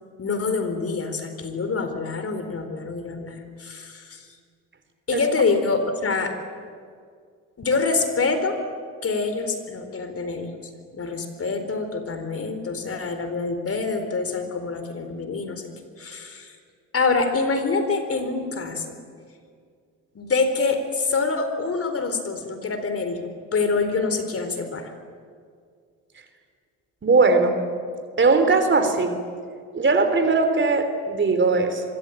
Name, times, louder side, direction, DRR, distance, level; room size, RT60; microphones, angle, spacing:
voice 1, 0.2-4.2 5.1-6.4 7.6-8.6 9.0-10.6 10.9-15.7 16.0-16.5 16.9-19.0 20.1-24.9, left 4 dB, 35° left, 8 dB, 4.2 m, -26 dB
voice 2, 27.0-27.6 28.2-29.1 29.7-31.8, right 3 dB, 30° right, 8 dB, 3.6 m, -19 dB
25.0 x 23.0 x 9.0 m, 2.1 s
supercardioid pair, 70°, 38 cm